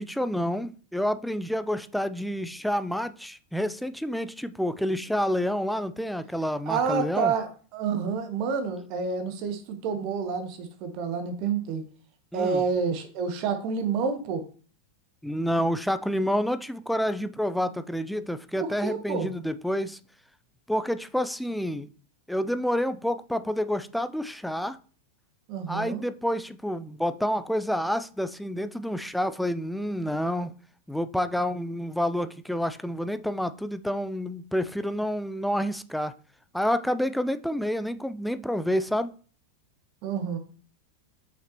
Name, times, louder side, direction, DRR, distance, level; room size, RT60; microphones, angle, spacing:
voice 1, 0.0-7.3 12.3-12.6 15.2-20.0 20.7-21.9 22.3-24.8 25.7-30.5 30.9-36.1 36.5-39.1, equal, ahead, 0.4 m, -28 dB
voice 2, 6.7-11.8 12.3-14.4 18.6-19.3 25.5-26.0 40.0-40.4, right 5 dB, 40° right, 1.1 m, -29 dB
5.8 x 5.6 x 3.0 m
figure-of-eight pair, 90°, 0 cm